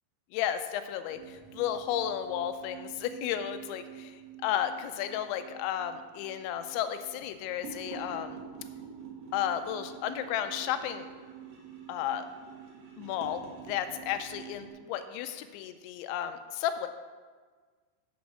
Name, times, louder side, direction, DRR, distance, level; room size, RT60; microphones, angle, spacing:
voice 1, 0.3-8.4 9.3-11.1 11.9-12.3 13.0-16.9, left 10 dB, 85° left, 9 dB, 2.9 m, -33 dB
sound 1, 1.1-14.7, right 7 dB, 75° right, 1.5 m, -47 dB
8.5 x 6.1 x 6.1 m, 1.5 s
omnidirectional pair, 5.3 m